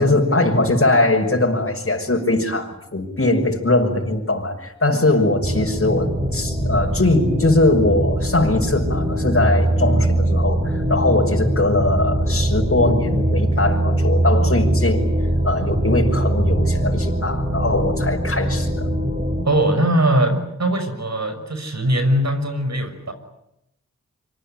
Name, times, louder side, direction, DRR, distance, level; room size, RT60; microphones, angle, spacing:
voice 1, 0.0-15.1 15.4-18.9, left 2 dB, 45° left, 0 dB, 6.0 m, -20 dB
sound 1, 5.4-19.4, right 1 dB, 25° right, 7.1 m, -21 dB
voice 2, 19.4-23.1, right 1 dB, 60° right, 8 dB, 6.3 m, -20 dB
26.0 x 25.0 x 9.2 m, 0.84 s
cardioid pair, 45°, 30 cm